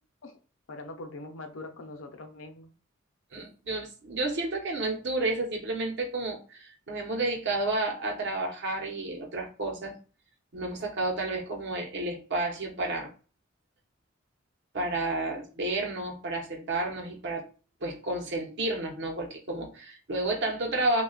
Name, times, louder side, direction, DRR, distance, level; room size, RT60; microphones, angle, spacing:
voice 1, 0.7-2.7, left 2 dB, 70° left, 5 dB, 0.7 m, -42 dB
voice 2, 3.3-9.9 10.5-13.1 14.7-17.4 17.8-21.0, right 2 dB, 60° right, 2 dB, 0.9 m, -31 dB
3.2 x 2.3 x 3.8 m, 0.37 s
head